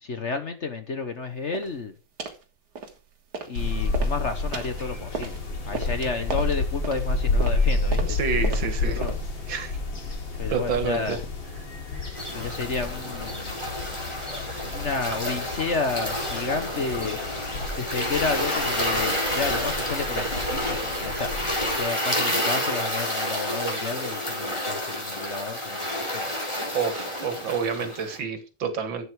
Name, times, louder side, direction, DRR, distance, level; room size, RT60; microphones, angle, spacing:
voice 1, 0.0-2.0 3.5-5.4 5.7-9.1 10.4-11.2 12.3-13.6 14.7-17.2 17.8-21.4 21.7-26.3 27.8-28.0, left 4 dB, 45° left, 1.2 m, -31 dB
sound 1, 1.5-1.8 2.2-2.4 2.8-3.6 3.9-9.4, right 4 dB, 60° right, 2.2 m, -36 dB
sound 2, 3.6-21.8, left 3 dB, 80° left, 3.4 m, -30 dB
voice 2, 8.1-9.0 9.5-9.7 10.5-11.2 12.0-12.2 26.7-29.1, right 6 dB, 75° right, 2.3 m, -28 dB
sound 3, 12.1-28.2, equal, 15° left, 3.7 m, -29 dB
12.0 x 8.2 x 4.7 m
omnidirectional pair, 2.1 m